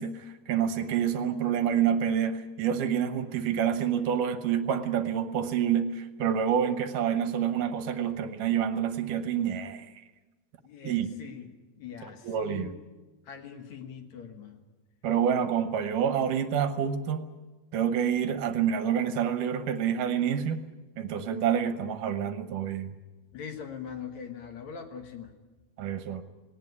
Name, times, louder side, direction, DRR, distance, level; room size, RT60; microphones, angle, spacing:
voice 1, 0.0-9.9 10.8-11.1 12.2-12.8 15.0-17.3 17.7-20.6 21.0-22.9 25.8-26.2, right 8 dB, 75° right, 10 dB, 2.5 m, -28 dB
voice 2, 10.6-12.7 13.3-14.6 23.3-25.3, left 7 dB, 60° left, 6 dB, 2.5 m, -42 dB
18.5 x 18.5 x 9.6 m, 1.2 s
omnidirectional pair, 3.9 m